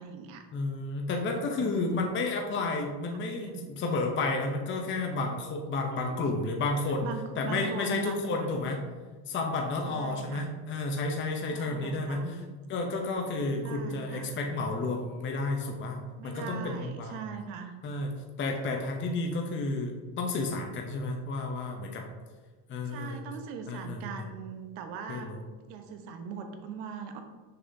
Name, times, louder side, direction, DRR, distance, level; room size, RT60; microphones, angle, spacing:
voice 1, 0.0-0.4 1.3-1.7 3.1-3.7 5.9-6.3 7.0-8.8 9.8-10.5 11.5-12.5 13.5-14.4 16.2-17.7 22.8-25.3 25.6-27.2, right 7 dB, 70° right, 5 dB, 1.1 m, -41 dB
voice 2, 0.5-7.1 7.4-8.8 9.3-12.4 12.7-16.0 16.2-17.2 17.8-22.0 22.7-23.2 23.7-24.0 25.1-25.4, left 3 dB, 25° left, 2 dB, 0.7 m, -31 dB
6.7 x 5.6 x 2.7 m, 1.3 s
cardioid pair, 125°, 49 cm